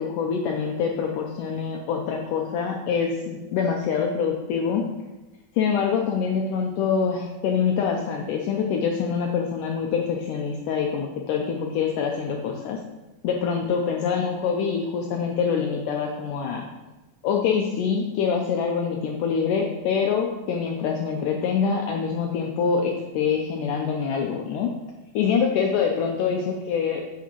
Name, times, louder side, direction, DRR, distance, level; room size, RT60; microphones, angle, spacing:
voice 1, 0.0-4.9 5.6-12.8 13.2-16.7 17.2-24.7 25.1-27.1, left 6 dB, 85° left, 1 dB, 1.9 m, -25 dB
8.2 x 7.2 x 3.0 m, 1.1 s
omnidirectional pair, 4.4 m